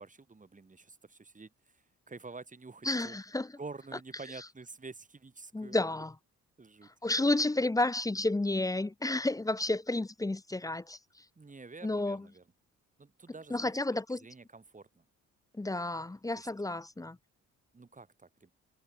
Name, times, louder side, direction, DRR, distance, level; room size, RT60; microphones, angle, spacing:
voice 1, 0.0-3.2 3.6-5.8 6.6-6.9 11.4-12.4 13.0-13.7 14.1-15.0 16.3-16.5 17.7-18.5, right 4 dB, 25° right, 5.6 m, -48 dB
voice 2, 2.8-3.5 5.5-6.1 7.0-11.0 11.8-12.3 13.5-14.2 15.6-17.2, left 2 dB, 10° left, 0.8 m, -31 dB
cardioid pair, 90°, 30 cm